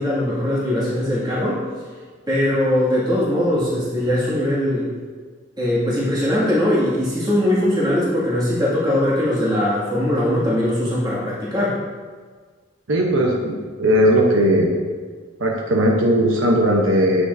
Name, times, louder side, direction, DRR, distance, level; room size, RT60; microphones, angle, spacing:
voice 1, 0.0-1.6 2.3-4.9 5.6-11.8, left 1 dB, 20° right, -8 dB, 2.2 m, -20 dB
voice 2, 12.9-14.7 15.4-17.2, equal, 75° right, -1 dB, 1.0 m, -17 dB
9.7 x 6.2 x 2.7 m, 1.5 s
head